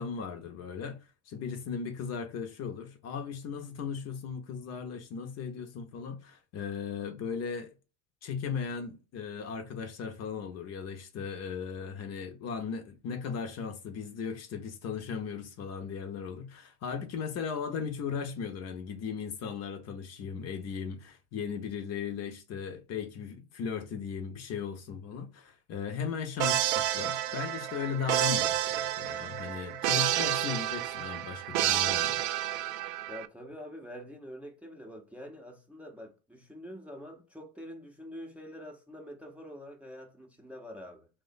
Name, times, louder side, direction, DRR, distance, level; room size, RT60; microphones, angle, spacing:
voice 1, 0.0-7.7 8.2-32.2, left 6 dB, 50° left, 0.7 m, -37 dB
sound 1, 26.4-33.3, right 13 dB, 75° right, 0.5 m, -30 dB
voice 2, 33.1-41.1, equal, 5° right, 0.7 m, -46 dB
3.0 x 2.2 x 3.8 m
supercardioid pair, 100°, 34 cm